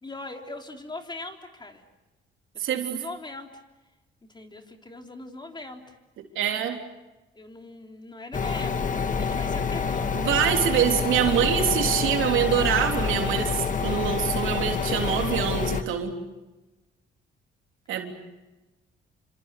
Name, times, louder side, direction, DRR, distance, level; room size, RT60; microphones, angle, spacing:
voice 1, 0.0-1.8 2.5-3.6 4.3-6.0 6.7-6.8 7.4-10.3, left 2 dB, 20° left, 4 dB, 3.7 m, -41 dB
voice 2, 2.6-3.0 6.4-6.8 10.1-16.2 17.9-18.1, right 9 dB, 85° right, 4 dB, 3.5 m, -25 dB
sound 1, 8.3-15.8, left 5 dB, 40° left, 1.8 m, -27 dB
28.0 x 26.0 x 6.8 m, 1.1 s
cardioid pair, 90°, 20 cm